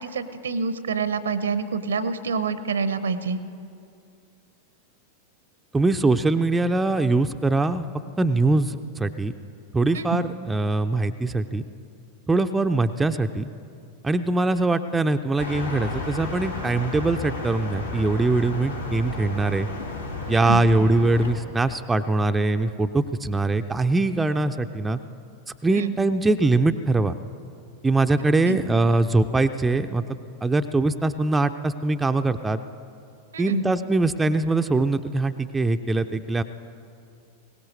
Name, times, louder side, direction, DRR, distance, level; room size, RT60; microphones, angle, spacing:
voice 1, 0.0-3.4 9.9-10.2 20.3-20.6 25.7-25.9 28.4-28.6 33.3-33.6, right 4 dB, 70° right, 13 dB, 0.8 m, -27 dB
voice 2, 5.7-7.8 8.2-9.3 9.7-11.6 12.3-13.5 14.0-19.7 20.3-25.0 25.6-27.1 27.8-30.0 30.4-32.6 33.4-36.4, right 2 dB, 10° right, 7 dB, 0.5 m, -22 dB
sound 1, 15.4-21.3, left 3 dB, 85° left, 2.5 m, -33 dB
22.0 x 18.0 x 3.2 m, 2.5 s
figure-of-eight pair, 90°, 0 cm